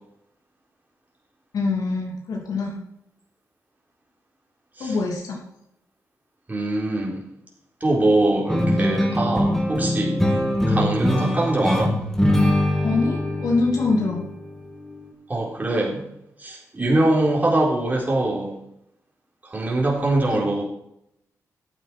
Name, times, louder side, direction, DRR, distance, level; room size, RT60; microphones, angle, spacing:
voice 1, 1.5-2.8 4.8-5.4 12.8-14.2 20.3-20.4, left 3 dB, 80° left, 0 dB, 2.9 m, -24 dB
voice 2, 6.5-7.2 7.8-10.2 10.7-11.9 15.3-16.0 16.4-18.5 19.5-20.7, right 2 dB, 25° right, -3 dB, 3.9 m, -22 dB
sound 1, 8.5-15.1, left 1 dB, 5° left, 2.8 m, -23 dB
12.0 x 8.6 x 4.5 m, 0.80 s
cardioid pair, 75°, 6 cm